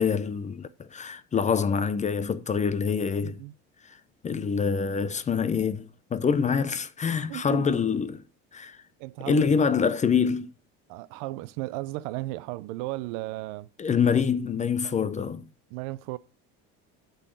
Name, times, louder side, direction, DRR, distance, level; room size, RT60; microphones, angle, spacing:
voice 1, 0.0-3.4 4.2-8.2 8.5-8.8 9.2-10.5 13.8-15.5, left 6 dB, 25° left, 0.6 m, -25 dB
voice 2, 3.2-3.5 7.3-7.8 9.0-9.7 10.9-13.7 14.8-14.9 15.7-16.2, right 18 dB, 90° right, 0.5 m, -35 dB
8.2 x 4.0 x 6.4 m
cardioid pair, 110°, 29 cm